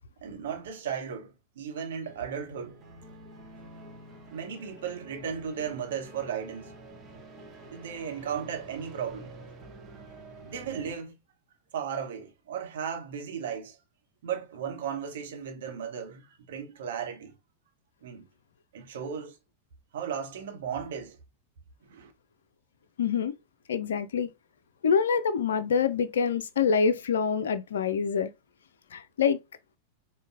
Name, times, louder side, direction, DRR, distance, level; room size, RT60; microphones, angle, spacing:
voice 1, 0.2-2.8 4.3-6.7 7.7-9.4 10.4-11.2 11.7-13.8 14.2-17.4 18.0-18.3 18.7-19.4 19.9-21.2 21.9-22.1, right 7 dB, 60° right, 0.9 m, -35 dB
sound 1, 1.9-10.9, right 2 dB, 20° right, 1.1 m, -48 dB
voice 2, 23.0-23.3 23.7-24.3 24.8-28.3 28.9-29.4, left 6 dB, 65° left, 0.4 m, -26 dB
5.0 x 2.2 x 2.5 m
figure-of-eight pair, 90°, 0 cm